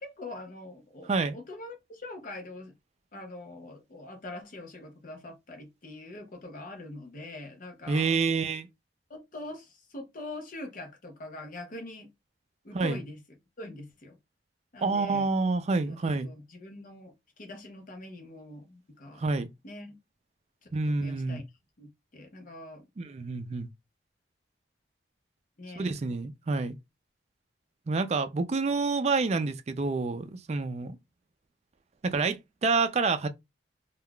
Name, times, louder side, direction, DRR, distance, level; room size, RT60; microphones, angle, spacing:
voice 1, 0.0-2.7 3.1-8.5 9.1-12.1 12.6-13.2 13.6-14.2 14.7-15.3 15.8-19.3 19.6-20.0 20.6-21.4 21.8-22.9 25.6-26.0, left 2 dB, 45° left, 0.7 m, -43 dB
voice 2, 7.9-8.7 12.7-13.0 14.8-16.3 19.2-19.5 20.7-21.4 23.0-23.7 25.7-26.8 27.9-31.0 32.0-33.3, right 4 dB, 35° right, 0.4 m, -28 dB
3.5 x 2.3 x 2.2 m
head